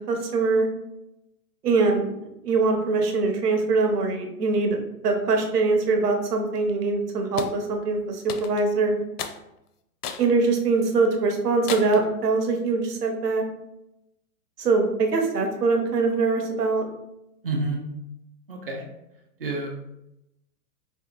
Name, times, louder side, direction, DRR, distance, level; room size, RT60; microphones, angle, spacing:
voice 1, 0.1-0.7 1.6-2.2 2.4-8.9 10.2-13.4 14.6-16.8, right 3 dB, 80° right, 3 dB, 1.0 m, -23 dB
sound 1, 7.4-7.6 8.3-8.7 9.2-9.4 10.0-10.3 10.8-10.9 11.7-12.1, left 7 dB, 75° left, 0.6 m, -33 dB
voice 2, 17.4-17.8 18.5-18.8 19.4-19.7, right 2 dB, 40° right, 1 dB, 0.5 m, -28 dB
4.2 x 2.8 x 2.4 m, 0.87 s
hypercardioid pair, 175°, 46 cm